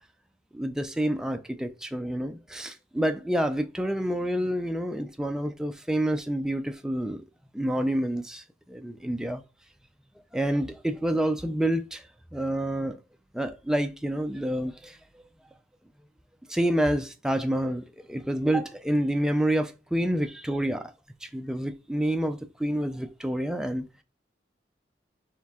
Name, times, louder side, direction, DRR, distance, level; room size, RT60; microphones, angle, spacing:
voice 1, 0.5-7.2 7.5-9.4 10.3-12.0 12.3-13.0 13.3-15.0 16.5-20.9 21.2-23.9, right 1 dB, 5° right, 0.3 m, -28 dB
4.5 x 3.3 x 3.6 m
head